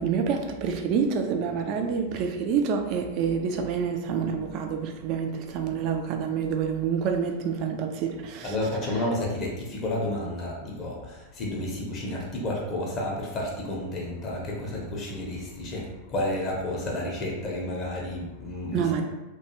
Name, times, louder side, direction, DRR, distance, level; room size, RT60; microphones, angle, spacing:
voice 1, 0.0-8.6 18.7-19.0, right 6 dB, 40° right, 4 dB, 0.3 m, -27 dB
voice 2, 8.4-19.0, left 1 dB, 30° left, -3 dB, 0.6 m, -31 dB
2.3 x 2.2 x 2.9 m, 1.1 s
figure-of-eight pair, 90°, 0 cm